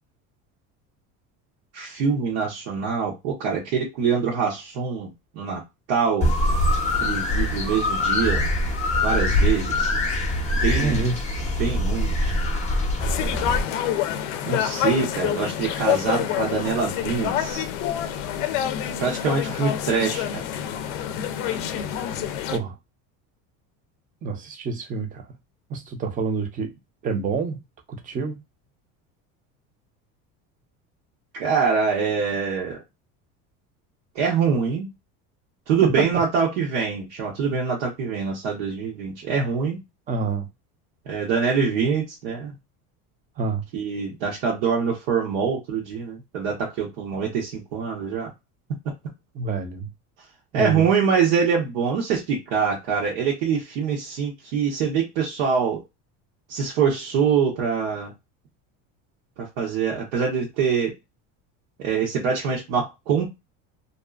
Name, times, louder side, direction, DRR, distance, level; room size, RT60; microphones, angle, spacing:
voice 1, 1.7-5.6 5.9-6.3 6.9-8.4 9.0-10.0 10.5-11.0 11.6-12.3 14.4-17.7 19.0-20.4 31.3-32.8 34.1-34.9 35.7-39.8 41.1-42.6 43.7-48.3 50.5-55.8 56.5-58.1 59.4-60.9 61.8-63.3, right 6 dB, 90° right, 1.0 m, -24 dB
sound 1, 6.2-13.6, left 1 dB, 20° left, 0.6 m, -23 dB
voice 2, 10.7-11.6 22.5-22.8 24.2-25.3 25.7-26.7 27.0-27.6 27.9-28.4 35.8-36.1 40.1-40.5 43.4-43.6 49.3-49.9 50.5-50.9, right 4 dB, 25° right, 0.5 m, -27 dB
sound 2, 13.0-22.6, left 10 dB, 90° left, 0.5 m, -27 dB
2.6 x 2.4 x 2.3 m
cardioid pair, 150°, 35 cm